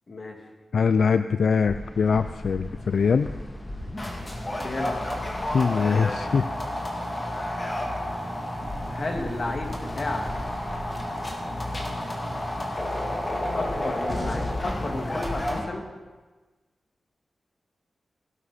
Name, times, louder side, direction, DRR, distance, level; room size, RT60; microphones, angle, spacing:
voice 1, 0.7-3.3 5.5-6.5, left 5 dB, 75° left, 11 dB, 0.3 m, -22 dB
sound 1, 1.6-15.6, left 1 dB, 25° left, 2.3 m, -31 dB
voice 2, 4.6-5.0 8.9-10.3 13.6-15.8, left 2 dB, 45° left, 2 dB, 2.1 m, -32 dB
17.5 x 13.0 x 4.2 m, 1.3 s
wide cardioid pair, 130°, 0 cm